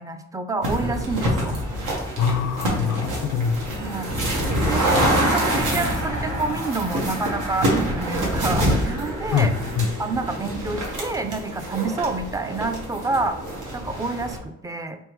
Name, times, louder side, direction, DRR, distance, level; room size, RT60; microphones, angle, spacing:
voice 1, 0.0-1.6 3.8-4.1 4.7-5.0 5.3-9.5 10.0-13.4 13.7-15.0, right 3 dB, 10° right, 8 dB, 0.4 m, -28 dB
sound 1, 0.6-14.4, equal, 85° right, 1.2 m, -26 dB
voice 2, 2.2-3.7 9.3-9.9, left 7 dB, 60° left, 11 dB, 0.5 m, -23 dB
3.6 x 3.3 x 3.0 m, 0.86 s
cardioid pair, 90°, 30 cm